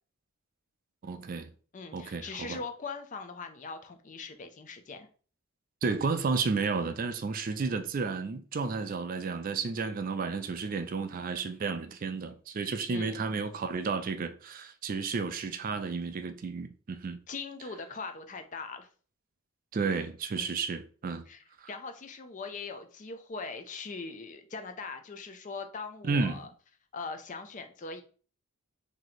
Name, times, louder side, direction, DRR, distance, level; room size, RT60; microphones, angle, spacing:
voice 1, 1.0-1.5 1.9-2.6 5.8-17.2 19.7-21.2 21.6-21.7 26.0-26.4, right 4 dB, 40° right, 0.3 m, -32 dB
voice 2, 1.7-5.1 12.9-13.2 17.3-18.9 20.3-20.5 21.3-26.5 26.9-28.0, left 4 dB, 35° left, 0.4 m, -41 dB
3.1 x 2.8 x 4.0 m
head